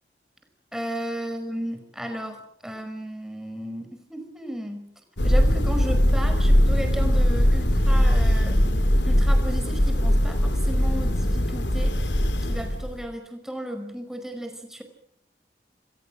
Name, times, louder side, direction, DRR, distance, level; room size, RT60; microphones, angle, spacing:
voice 1, 0.7-4.9 5.2-8.6 9.0-12.0 12.5-14.8, equal, 5° right, 6 dB, 5.2 m, -34 dB
Thunder, 5.2-13.1, equal, 90° left, 3.5 m, -20 dB
28.5 x 25.5 x 6.4 m, 0.66 s
head